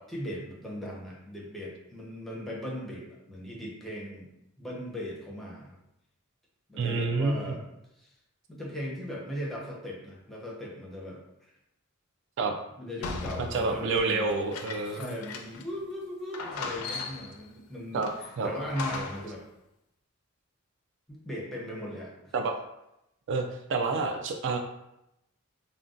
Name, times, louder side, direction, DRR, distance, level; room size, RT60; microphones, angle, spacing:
voice 1, 0.1-4.3 4.6-5.8 6.7-8.1 8.5-11.2 12.8-14.5 14.9-19.4 21.1-22.3, equal, ahead, -4 dB, 0.6 m, -38 dB
voice 2, 6.8-7.6 12.4-12.6 13.4-15.1 17.9-18.1 18.4-18.5 22.3-22.6 23.3-24.6, right 3 dB, 60° right, 3 dB, 0.3 m, -28 dB
sound 1, 13.0-15.8 16.0-16.1 16.3-17.4 18.0-19.4, left 4 dB, 85° left, 0.4 m, -38 dB
2.5 x 2.2 x 3.7 m, 0.85 s
head